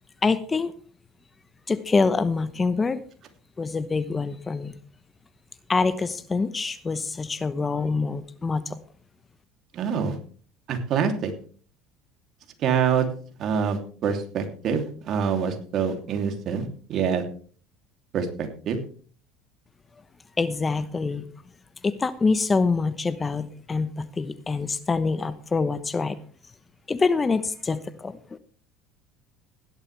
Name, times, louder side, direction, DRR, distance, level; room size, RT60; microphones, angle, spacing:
voice 1, 0.2-0.7 1.7-3.0 3.6-4.8 5.7-8.8 20.4-21.2 21.8-26.2 26.9-28.2, left 4 dB, 20° left, 14 dB, 0.9 m, -25 dB
voice 2, 9.7-10.2 10.7-11.3 12.6-13.1 13.4-17.2 18.1-18.8, right 7 dB, 50° right, 5 dB, 3.0 m, -26 dB
16.5 x 12.0 x 3.4 m, 0.43 s
supercardioid pair, 90°, 0 cm